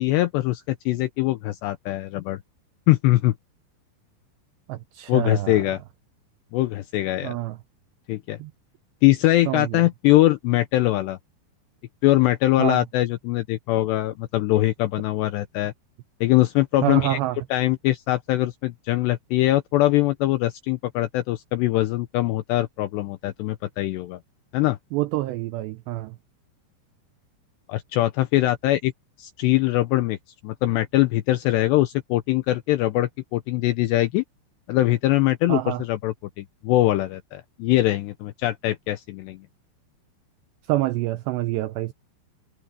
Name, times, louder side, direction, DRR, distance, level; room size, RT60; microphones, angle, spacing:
voice 1, 0.0-2.4 2.9-3.3 5.1-5.8 6.5-7.4 8.1-8.4 9.0-11.2 12.0-15.7 16.2-17.2 17.5-24.2 24.5-24.8 27.7-28.9 29.2-30.2 30.4-34.2 34.7-39.4, left 16 dB, 85° left, 2.5 m, -22 dB
voice 2, 4.7-5.6 7.2-7.6 8.4-8.5 9.5-9.8 12.6-12.8 16.8-17.4 24.9-26.2 35.5-35.8 40.7-41.9, right 16 dB, 85° right, 2.5 m, -26 dB
omnidirectional pair, 5.7 m